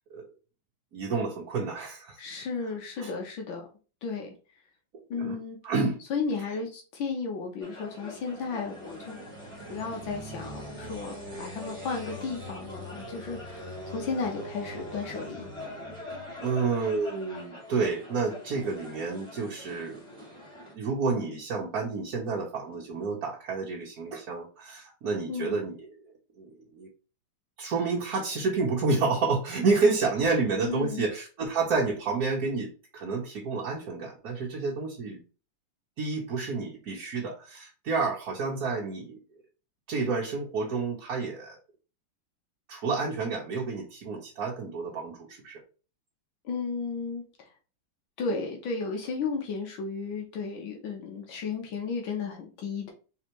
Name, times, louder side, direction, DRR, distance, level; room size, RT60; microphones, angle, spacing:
voice 1, 0.9-2.2 3.0-3.1 5.2-5.4 5.6-6.0 16.4-20.0 20.7-25.9 26.4-26.5 26.8-26.9 27.6-35.2 36.0-39.2 39.9-41.6 42.7-45.6, right 4 dB, 55° right, -4 dB, 1.3 m, -29 dB
voice 2, 2.2-3.7 4.0-4.3 5.1-5.6 6.1-9.2 9.7-15.5 25.3-25.6 30.6-31.0 46.5-47.2 48.2-52.9, left 4 dB, 75° left, 1 dB, 1.8 m, -34 dB
sound 1, 7.6-20.7, left 1 dB, 15° right, 1.5 m, -42 dB
4.7 x 3.5 x 3.0 m, 0.35 s
omnidirectional pair, 2.2 m